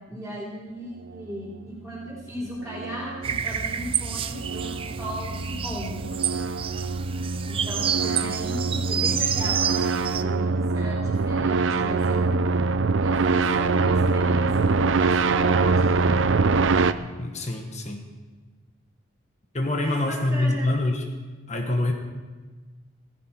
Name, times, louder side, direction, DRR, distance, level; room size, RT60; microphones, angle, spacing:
voice 1, 0.1-6.0 7.4-12.4 13.0-16.3 19.8-20.7, equal, 5° right, -12 dB, 3.7 m, -36 dB
sound 1, 2.4-16.9, right 4 dB, 80° right, 0.6 m, -24 dB
sound 2, 3.2-10.2, right 8 dB, 25° right, 0.4 m, -29 dB
voice 2, 17.0-18.0 19.5-21.0 21.5-21.9, left 2 dB, 35° left, 3 dB, 1.4 m, -25 dB
15.5 x 15.5 x 4.5 m, 1.4 s
head